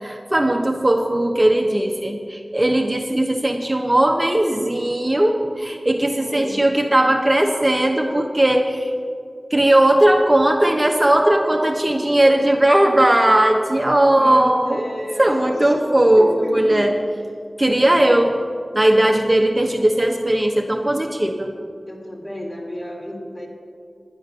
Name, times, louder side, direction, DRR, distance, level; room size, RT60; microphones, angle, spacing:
voice 1, 0.0-8.9 9.5-14.8 15.2-17.0 17.6-18.4 18.7-21.5, right 1 dB, 20° right, 2 dB, 0.9 m, -18 dB
voice 2, 6.1-6.7 14.1-15.7 16.2-16.8 17.3-17.5 21.9-23.5, left 1 dB, 35° left, -2 dB, 3.6 m, -32 dB
11.0 x 9.8 x 6.7 m, 2.3 s
wide cardioid pair, 45°, 0 cm